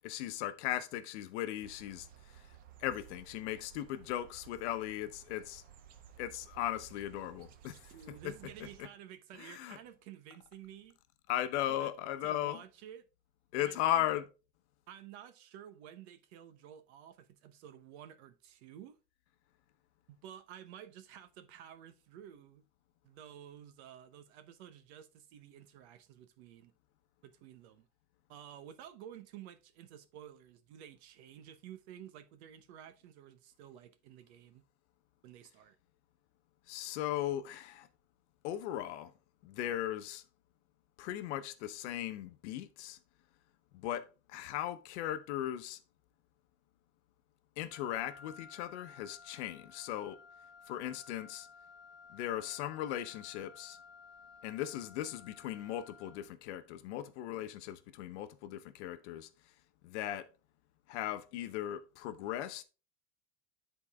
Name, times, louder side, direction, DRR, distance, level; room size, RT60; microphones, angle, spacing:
voice 1, 0.0-2.1 2.3-2.4 2.8-5.6 6.2-8.9 9.4-9.8 11.3-12.6 13.5-14.3 36.7-37.9 38.4-39.1 39.4-40.2 41.0-43.0 43.7-45.8 47.6-50.2 50.7-51.5 52.1-53.8 54.4-59.3 59.8-60.3 60.9-62.6, left 12 dB, 75° left, 0.9 m, -37 dB
sound 1, 1.6-8.8, right 9 dB, 25° right, 0.4 m, -57 dB
voice 2, 7.9-11.0 11.7-11.9 12.2-13.1 13.6-14.1 14.9-19.0 20.1-22.6 23.0-26.7 27.2-27.9 28.3-34.6 35.2-35.8, right 10 dB, 65° right, 1.0 m, -52 dB
Wind instrument woodwind instrument, 47.7-56.4, left 5 dB, ahead, 0.8 m, -56 dB
10.0 x 4.0 x 3.5 m
cardioid pair, 175°, 35 cm